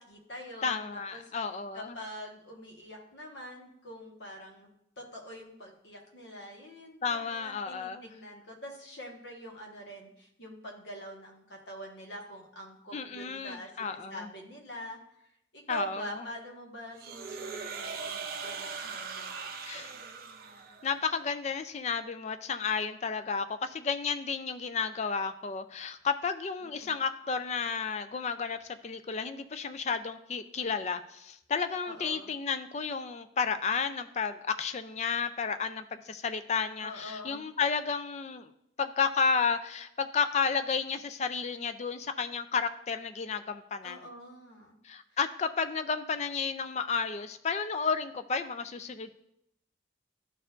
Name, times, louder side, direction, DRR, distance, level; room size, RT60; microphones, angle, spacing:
voice 1, 0.0-0.8 1.1-1.2 1.7-4.7 5.0-15.0 15.5-19.9 26.8-26.9 31.9-32.3 36.8-37.4 43.8-44.8, equal, 70° left, 0 dB, 1.4 m, -45 dB
voice 2, 0.6-2.0 7.0-8.1 12.9-14.3 15.7-16.3 19.6-19.9 20.8-38.5 38.8-44.1 44.8-49.1, left 5 dB, 35° left, 10 dB, 0.3 m, -32 dB
sound 1, 17.0-21.0, right 5 dB, 50° right, 0.6 m, -40 dB
12.0 x 4.4 x 2.5 m, 0.77 s
head